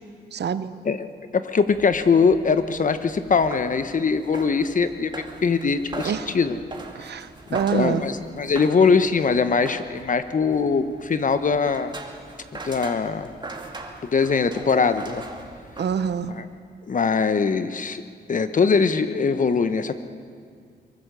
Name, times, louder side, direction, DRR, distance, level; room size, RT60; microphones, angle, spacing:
voice 1, 0.3-0.7 6.0-6.3 6.9-8.0 15.8-16.3, right 7 dB, 70° right, 13 dB, 0.9 m, -26 dB
voice 2, 1.3-6.6 7.7-11.9 12.6-13.3 14.0-15.2 16.3-16.4 16.9-18.0 18.3-19.9, left 5 dB, 45° left, 11 dB, 1.2 m, -22 dB
sound 1, 1.5-16.4, right 2 dB, 25° right, 2.4 m, -41 dB
23.5 x 22.0 x 6.9 m, 2.2 s
cardioid pair, 100°, 18 cm